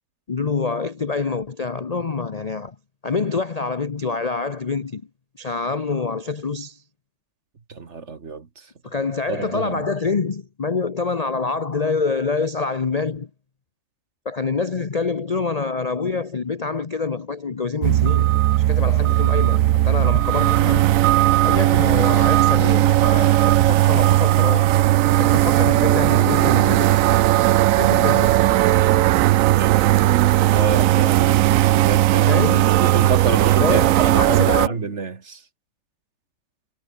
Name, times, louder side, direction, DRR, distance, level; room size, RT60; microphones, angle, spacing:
voice 1, 0.3-2.8 3.0-5.0 5.4-6.8 8.8-13.3 14.2-18.4 18.7-20.9 21.4-24.8 25.2-27.2 27.7-28.4 32.3-32.8 33.6-34.8, left 4 dB, 40° left, 0.5 m, -26 dB
voice 2, 7.7-8.7 9.3-9.9 29.5-32.4 32.8-35.4, right 4 dB, 40° right, 1.9 m, -28 dB
sound 1, 17.8-34.7, right 15 dB, 80° right, 0.7 m, -17 dB
omnidirectional pair, 1.9 m